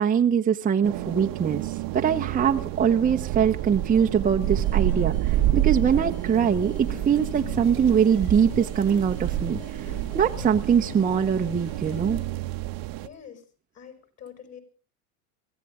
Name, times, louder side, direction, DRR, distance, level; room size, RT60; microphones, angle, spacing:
voice 1, 0.0-1.7 1.9-9.6 10.1-12.2, right 7 dB, 20° right, 3 dB, 0.9 m, -22 dB
sound 1, 0.8-13.1, right 14 dB, 45° right, 1.0 m, -29 dB
sound 2, 4.4-12.2, left 5 dB, 50° left, 6.4 m, -42 dB
voice 2, 13.0-13.5 13.7-14.6, left 8 dB, 35° left, 8 dB, 6.1 m, -45 dB
23.0 x 15.0 x 3.7 m, 0.36 s
supercardioid pair, 115°, 46 cm